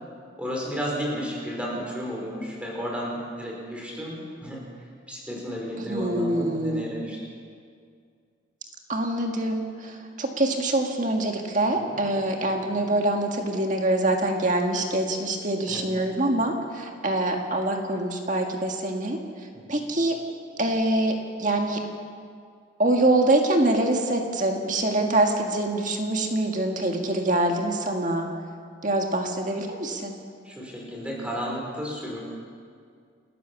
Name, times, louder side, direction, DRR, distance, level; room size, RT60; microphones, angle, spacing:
voice 1, 0.4-4.6 5.1-7.2 11.8-12.0 12.5-12.7 15.7-15.9 19.5-19.9 30.4-32.2, equal, 5° right, -3 dB, 5.3 m, -33 dB
voice 2, 5.9-6.9 8.9-19.2 19.7-20.2 20.6-21.8 22.8-28.3 28.8-30.2, right 1 dB, 40° right, 2 dB, 1.9 m, -25 dB
29.0 x 14.0 x 7.1 m, 2.2 s
head